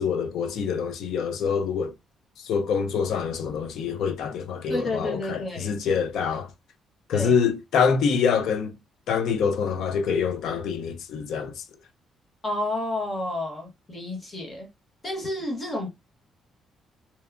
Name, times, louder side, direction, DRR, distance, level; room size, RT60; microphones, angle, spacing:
voice 1, 0.0-1.9 2.4-6.5 7.1-8.8 9.1-11.6, left 6 dB, 75° left, 0.5 m, -25 dB
voice 2, 4.7-5.7 7.1-7.4 12.4-14.7 15.0-15.9, left 1 dB, 25° left, 1.2 m, -30 dB
2.8 x 2.1 x 2.4 m
cardioid pair, 125°, 0 cm